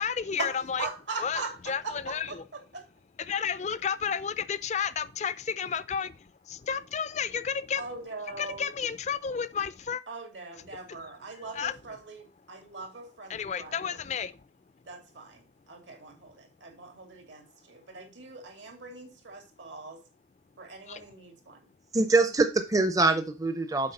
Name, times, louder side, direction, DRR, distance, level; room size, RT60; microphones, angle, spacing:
voice 1, 0.0-0.9 1.2-2.4 3.2-7.9 8.4-10.0 10.7-11.0 11.4-11.7 13.3-14.4 20.9-21.1, left 7 dB, 35° left, 0.4 m, -32 dB
voice 2, 0.8-2.4 2.7-2.8 7.8-8.7 10.1-14.0 14.9-20.0 20.6-21.6, right 3 dB, 75° right, 2.6 m, -41 dB
voice 3, 21.9-23.9, right 3 dB, 20° right, 0.6 m, -24 dB
7.7 x 4.6 x 5.4 m
head